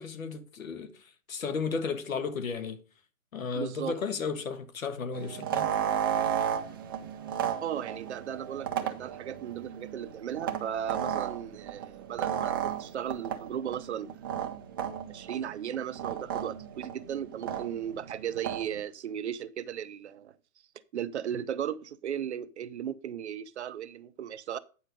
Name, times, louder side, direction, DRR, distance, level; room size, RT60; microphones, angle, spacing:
voice 1, 0.0-2.8 3.3-5.7, left 5 dB, 75° left, 1.5 m, -34 dB
voice 2, 3.6-3.9 7.6-14.6 15.1-20.4 20.9-24.6, right 9 dB, 55° right, 0.7 m, -36 dB
sound 1, 5.1-18.8, right 9 dB, 15° right, 0.5 m, -34 dB
9.3 x 4.8 x 5.2 m
hypercardioid pair, 145°, 41 cm